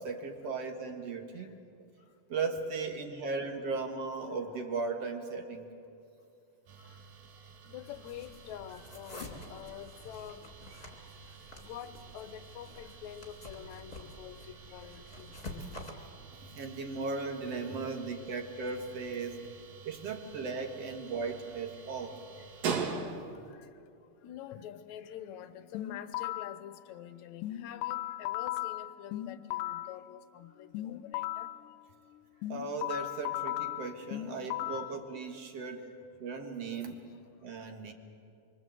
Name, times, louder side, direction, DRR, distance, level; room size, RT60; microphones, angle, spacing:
voice 1, 0.0-1.6 2.3-5.7 15.5-15.7 16.3-19.5 19.8-22.2 32.5-35.9 36.2-37.0 37.4-37.9, right 4 dB, 55° right, 4 dB, 2.5 m, -37 dB
sound 1, 6.7-23.5, right 5 dB, 90° right, 3.5 m, -44 dB
voice 2, 7.7-10.8 11.3-15.7 19.4-19.5 22.4-22.5 23.5-23.7 24.2-31.5 34.7-34.8, left 10 dB, 70° left, 11 dB, 2.2 m, -47 dB
sound 2, 7.9-15.9, left 2 dB, 20° left, 2.4 m, -49 dB
sound 3, 25.7-26.6 27.4-30.0 30.7-31.6 32.4-35.0, left 15 dB, 90° left, 2.4 m, -36 dB
25.5 x 24.0 x 8.0 m, 2.5 s
omnidirectional pair, 3.7 m